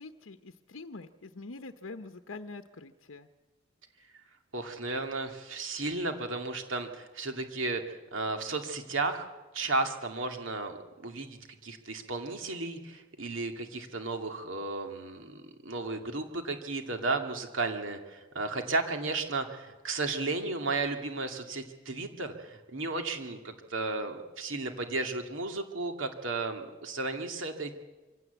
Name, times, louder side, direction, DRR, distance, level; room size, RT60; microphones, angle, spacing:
voice 1, 0.0-3.3, left 3 dB, 85° left, 8 dB, 0.9 m, -45 dB
voice 2, 4.5-9.3 9.5-27.7, right 3 dB, 75° right, 5 dB, 2.3 m, -34 dB
24.5 x 17.0 x 8.2 m, 1.2 s
head